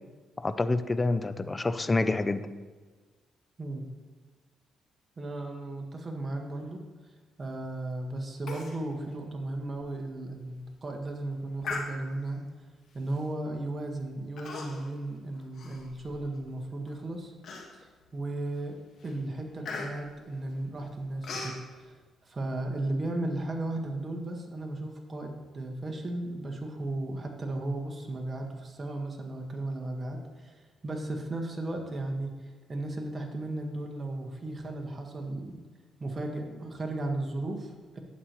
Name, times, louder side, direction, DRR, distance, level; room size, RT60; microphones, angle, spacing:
voice 1, 0.4-2.5, left 2 dB, 20° left, 12 dB, 0.5 m, -27 dB
voice 2, 5.2-6.8 7.4-12.4 12.9-17.3 17.8-18.8 19.0-21.5 21.8-21.9 22.2-32.3 32.7-35.6 36.0-38.0, right 2 dB, 30° right, 2 dB, 1.6 m, -35 dB
Human voice, 8.5-8.8 9.1-9.2 9.7-9.8 10.4-10.6 11.6-12.3 13.1-13.3 14.4-15.0 15.3-16.4 16.9-17.0 17.4-18.0 18.5-18.7 19.0-21.6, left 4 dB, 65° left, 1.6 m, -39 dB
11.0 x 8.2 x 3.1 m, 1.4 s
cardioid pair, 90°, 0 cm